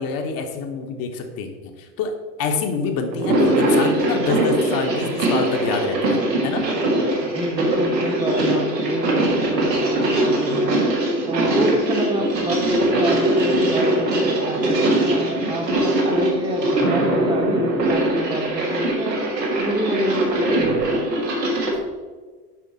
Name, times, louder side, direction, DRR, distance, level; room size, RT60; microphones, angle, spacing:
voice 1, 0.0-2.1 2.4-6.6, left 5 dB, 45° left, 5 dB, 1.1 m, -26 dB
sound 1, 3.1-21.8, right 1 dB, 85° right, 1.6 m, -21 dB
voice 2, 7.2-10.8 11.2-20.9, right 1 dB, 10° right, 3 dB, 1.0 m, -28 dB
7.4 x 5.1 x 4.0 m, 1.4 s
figure-of-eight pair, 75°, 49 cm